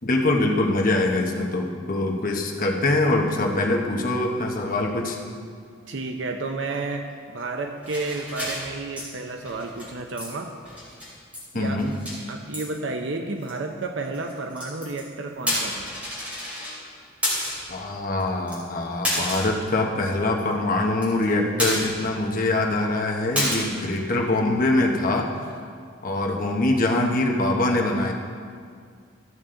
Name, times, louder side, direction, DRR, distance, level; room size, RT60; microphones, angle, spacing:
voice 1, 0.0-5.2 11.5-11.9 17.7-25.5 26.0-28.1, left 2 dB, 45° left, 1 dB, 1.1 m, -23 dB
voice 2, 5.9-10.5 11.5-11.8 12.3-15.9, right 3 dB, 70° right, 4 dB, 0.6 m, -31 dB
sound 1, 7.8-9.1 9.4-9.9 10.2-10.3 10.6-11.4 11.7-12.2 12.5-12.7 13.4-13.5 14.1-15.0 15.4-16.8 17.2-17.7 18.2-18.3 18.5-18.6 19.0-19.6 20.0-20.1 20.4-20.5 20.8-21.3 21.6-22.2 22.4-22.5 23.4-23.6, left 1 dB, 5° right, 3.1 m, -29 dB
14.0 x 7.2 x 3.8 m, 2.1 s
head